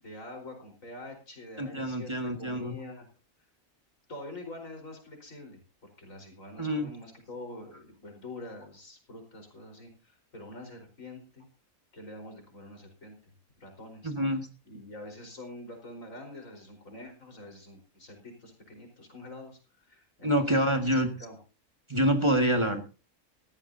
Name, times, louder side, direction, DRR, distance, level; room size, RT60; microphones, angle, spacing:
voice 1, 0.0-3.1 4.1-11.5 11.9-14.1 14.6-21.4, left 1 dB, 65° left, 3 dB, 5.1 m, -46 dB
voice 2, 1.6-2.8 6.6-6.9 14.0-14.5 20.2-21.1 21.9-22.8, equal, 20° right, 3 dB, 1.9 m, -26 dB
18.0 x 14.0 x 2.8 m, 0.33 s
omnidirectional pair, 1.5 m